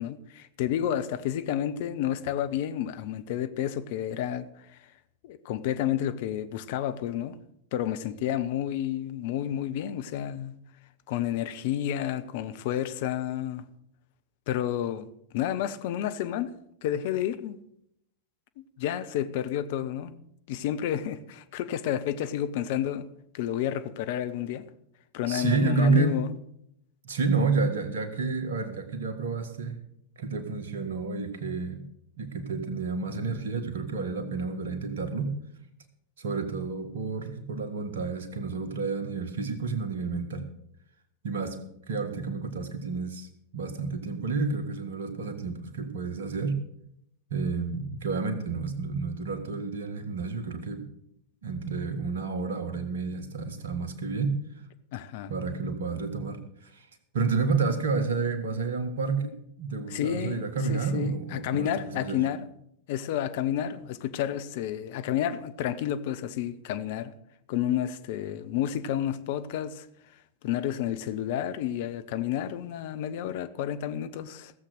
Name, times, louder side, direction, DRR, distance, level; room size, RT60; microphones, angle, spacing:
voice 1, 0.0-4.5 5.2-7.4 7.7-10.5 11.1-13.6 14.5-15.1 15.3-16.5 16.8-17.6 18.8-20.1 20.5-23.1 23.3-24.7 25.1-26.3 54.9-55.3 59.9-60.4 60.7-62.5 62.9-67.1 67.5-69.9 70.4-74.5, left 11 dB, 50° left, 0.8 m, -30 dB
voice 2, 25.3-26.2 27.0-29.8 30.2-31.8 32.2-35.3 36.2-40.4 41.2-41.6 41.9-43.3 43.5-46.6 47.3-50.8 51.4-54.4 55.3-56.9 57.1-62.2, right 4 dB, 65° right, 1.6 m, -30 dB
16.0 x 7.6 x 6.6 m
figure-of-eight pair, 90°, 0 cm